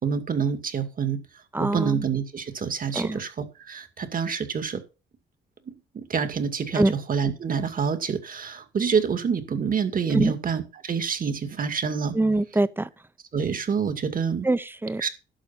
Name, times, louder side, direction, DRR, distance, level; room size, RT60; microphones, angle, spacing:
voice 1, 0.0-1.2 1.6-4.8 5.7-12.1 13.3-14.5 15.0-15.1, right 6 dB, 45° right, 2.3 m, -27 dB
voice 2, 1.5-2.0 2.9-3.2 6.8-6.9 10.1-10.3 12.1-12.9 14.4-15.0, right 2 dB, 10° right, 0.8 m, -23 dB
11.5 x 6.9 x 5.8 m
cardioid pair, 90°, 20 cm